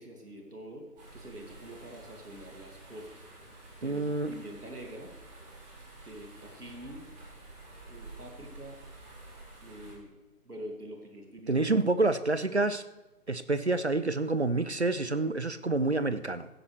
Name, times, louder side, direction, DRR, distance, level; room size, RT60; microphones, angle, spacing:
voice 1, 0.0-3.2 3.8-5.1 6.0-7.1 7.9-8.8 9.6-10.1 10.4-11.9, right 1 dB, 75° right, 2 dB, 2.5 m, -45 dB
sound 1, 1.0-9.9, right 2 dB, 25° right, 3.7 m, -50 dB
voice 2, 3.8-4.3 11.5-12.8 13.3-16.5, right 2 dB, 50° right, 13 dB, 0.5 m, -28 dB
16.0 x 9.9 x 3.2 m, 1.1 s
figure-of-eight pair, 150°, 46 cm